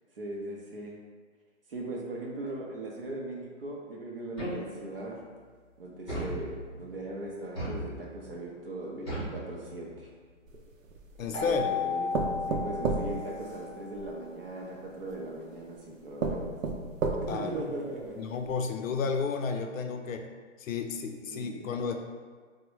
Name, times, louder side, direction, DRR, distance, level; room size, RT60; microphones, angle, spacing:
voice 1, 0.2-1.0 1.7-5.2 5.8-10.1 11.2-12.1 12.5-16.5 17.2-18.2 21.2-21.7, right 2 dB, 45° right, -2 dB, 0.5 m, -39 dB
sound 1, 4.4-5.1 6.1-6.9 7.5-8.3 9.1-10.1, right 1 dB, ahead, 0.9 m, -37 dB
sound 2, 10.5-11.4 12.1-14.1 15.1-15.2 15.8-15.9 16.2-17.6 18.0-18.1 18.5-18.6, right 3 dB, 90° right, 0.6 m, -32 dB
voice 2, 11.2-11.8 17.3-17.6 18.2-20.2 20.6-21.9, left 5 dB, 85° left, 5 dB, 0.5 m, -32 dB
Keyboard (musical), 11.3-13.9, left 6 dB, 25° left, 0.5 m, -34 dB
3.4 x 2.1 x 3.1 m, 1.5 s
hypercardioid pair, 175°, 39 cm